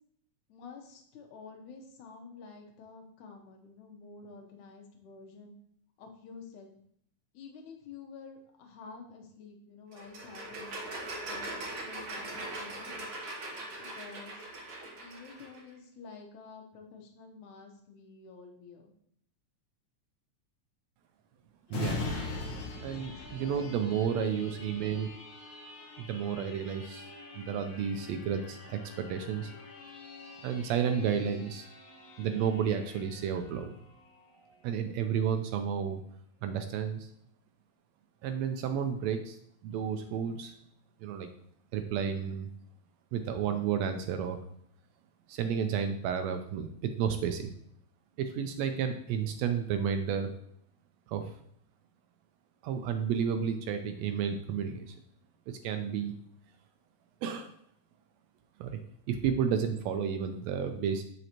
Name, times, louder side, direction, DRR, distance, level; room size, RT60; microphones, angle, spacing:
voice 1, 0.5-5.6 6.0-6.7 7.3-10.8 11.2-13.1 13.8-14.5 15.0-18.9 22.2-22.7 23.3-23.9, left 4 dB, 85° left, 3 dB, 2.4 m, -50 dB
sound 1, 9.9-15.6, right 2 dB, 55° right, 1.3 m, -41 dB
sound 2, 21.7-35.0 35.5-35.6, left 3 dB, 55° left, 1.4 m, -43 dB
voice 2, 21.7-22.1 22.8-25.1 26.0-27.1 27.3-29.5 30.4-31.7 32.2-33.7 34.6-36.0 36.4-37.1 38.2-40.5 41.0-41.3 41.7-42.5 43.1-44.4 45.3-47.5 48.2-50.3 51.1-51.3 52.6-54.9 55.5-56.1 57.2-57.5 58.6-58.8 59.1-61.0, right 7 dB, 80° right, 7 dB, 1.7 m, -31 dB
7.9 x 5.3 x 2.9 m, 0.69 s
omnidirectional pair, 3.3 m